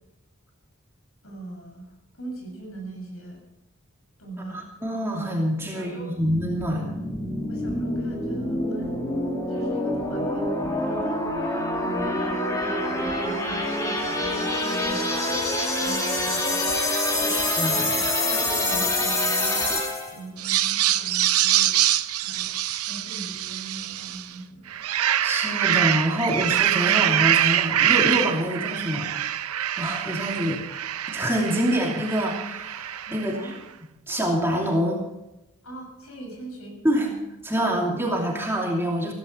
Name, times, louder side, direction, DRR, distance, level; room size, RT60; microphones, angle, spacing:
voice 1, 1.2-1.9 2.1-3.4 4.2-4.7 5.7-6.1 6.7-6.9 7.5-9.0 9.5-11.3 11.8-15.3 15.8-16.6 17.2-17.3 17.7-19.8 20.1-22.6 22.9-24.8 33.1-33.6 35.6-36.8, right 2 dB, 75° left, 2 dB, 6.9 m, -40 dB
voice 2, 4.8-6.9 17.3-17.9 25.2-30.6 31.1-33.5 34.1-35.0 36.8-37.1 37.4-39.1, equal, 10° right, -1 dB, 2.7 m, -26 dB
sound 1, 6.2-20.2, left 1 dB, 15° left, 2.5 m, -26 dB
sound 2, 20.4-24.3 24.7-33.4, right 11 dB, 90° right, 0.7 m, -24 dB
15.5 x 15.5 x 4.5 m, 0.93 s
head